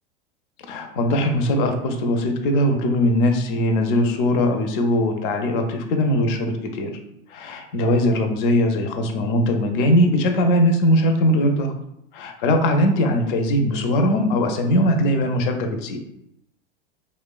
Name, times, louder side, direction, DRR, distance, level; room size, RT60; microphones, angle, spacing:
voice 1, 0.7-6.9 7.3-11.7 12.1-16.0, left 1 dB, 60° left, 5 dB, 0.5 m, -20 dB
3.0 x 2.1 x 2.3 m, 0.79 s
hypercardioid pair, 95°, 30 cm